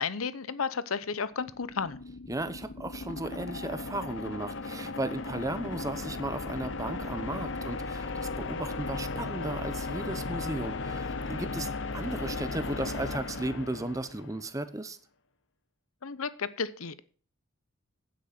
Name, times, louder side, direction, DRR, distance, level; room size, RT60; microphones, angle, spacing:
voice 1, 0.0-2.0 16.0-17.0, left 5 dB, 85° left, 16 dB, 0.8 m, -33 dB
sound 1, 1.3-14.5, left 3 dB, 60° left, 0.9 m, -36 dB
voice 2, 2.3-15.0, right 2 dB, 15° right, 12 dB, 0.8 m, -35 dB
9.4 x 8.2 x 5.8 m, 0.41 s
head